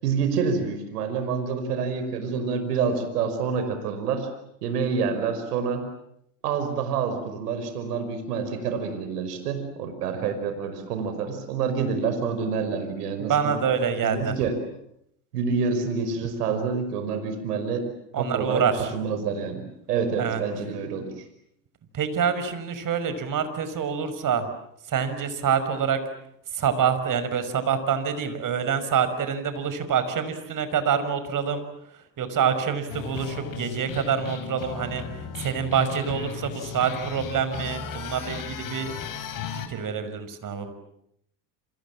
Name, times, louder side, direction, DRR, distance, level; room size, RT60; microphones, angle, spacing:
voice 1, 0.0-4.3 4.6-5.9 6.4-13.5 14.0-14.6 15.3-17.9 18.2-18.7 18.9-19.6 19.9-21.3, right 5 dB, 80° right, 8 dB, 5.3 m, -27 dB
voice 2, 13.2-14.3 18.1-18.9 20.2-20.4 21.9-24.5 24.9-26.0 26.5-31.6 32.2-35.0 35.4-38.9 39.5-40.7, right 7 dB, 45° right, 11 dB, 5.9 m, -26 dB
sound 1, 32.9-39.7, left 7 dB, 45° left, 5.2 m, -36 dB
28.5 x 28.0 x 7.5 m, 0.74 s
hypercardioid pair, 80°, 46 cm